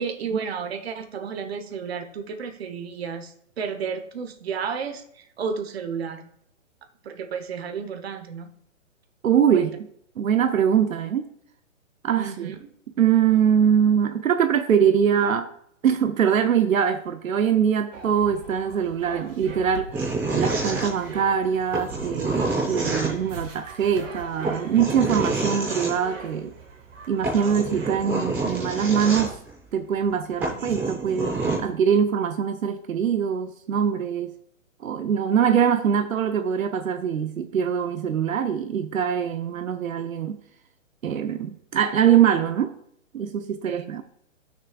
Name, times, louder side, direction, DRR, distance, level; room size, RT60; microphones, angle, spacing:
voice 1, 0.0-6.3 7.0-8.5 9.5-9.7 12.2-12.7 43.6-43.9, right 6 dB, 50° right, 7 dB, 1.1 m, -32 dB
voice 2, 9.2-9.7 10.2-11.3 12.0-12.5 13.0-15.5 15.8-19.9 20.3-26.5 27.1-29.4 29.7-34.3 34.8-40.4 41.0-42.7 43.1-44.0, right 8 dB, 85° right, 8 dB, 0.8 m, -23 dB
sound 1, 17.9-29.4, right 4 dB, 70° right, 2.0 m, -41 dB
sound 2, 19.9-21.3 21.7-23.4 24.4-25.9 26.9-27.0 27.2-29.5 30.1-30.2 30.4-31.6, right 2 dB, 5° right, 0.7 m, -28 dB
14.0 x 6.4 x 2.4 m, 0.71 s
hypercardioid pair, 160°, 40 cm